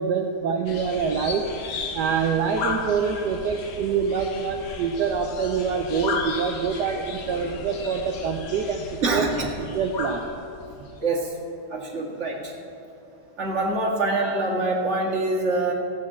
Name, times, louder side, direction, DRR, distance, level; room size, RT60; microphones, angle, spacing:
voice 1, 0.0-1.4 1.9-9.3 9.6-10.3, right 6 dB, 80° right, 3 dB, 1.3 m, -25 dB
sound 1, 0.6-11.0, left 4 dB, 60° left, 1.4 m, -35 dB
voice 2, 9.0-9.5 11.0-11.3 11.7-12.5 13.4-15.7, right 2 dB, 45° right, -2 dB, 2.0 m, -25 dB
15.0 x 6.1 x 7.3 m, 2.9 s
omnidirectional pair, 1.8 m